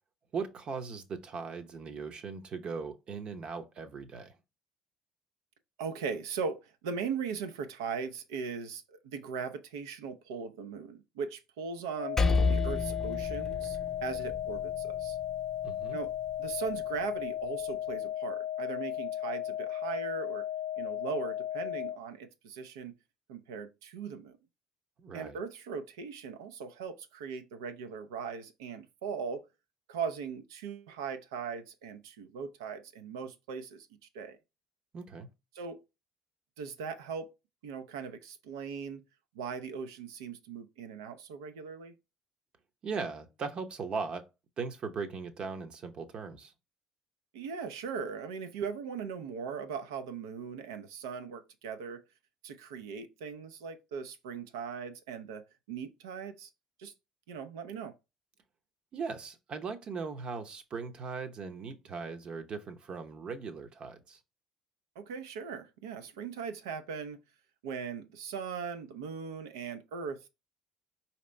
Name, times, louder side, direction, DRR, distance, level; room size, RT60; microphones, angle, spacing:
voice 1, 0.3-4.3 15.6-16.0 25.0-25.4 34.9-35.3 42.8-44.2 44.6-46.5 58.9-64.2, right 5 dB, 50° right, 0.8 m, -39 dB
voice 2, 5.8-12.2 12.5-15.2 15.9-16.1 16.4-20.4 20.8-22.9 23.3-24.4 25.1-29.4 29.9-33.9 34.1-34.4 35.5-35.8 36.6-37.3 37.6-39.0 39.3-41.9 47.3-52.0 52.4-55.4 55.7-56.5 56.8-56.9 57.3-57.9 65.0-67.2 67.6-70.3, right 6 dB, 80° right, 0.5 m, -39 dB
sound 1, 12.0-22.0, left 11 dB, 60° left, 0.3 m, -35 dB
Percussion, 12.2-16.9, left 4 dB, 20° left, 0.7 m, -32 dB
4.9 x 2.9 x 3.2 m
hypercardioid pair, 55°, 2 cm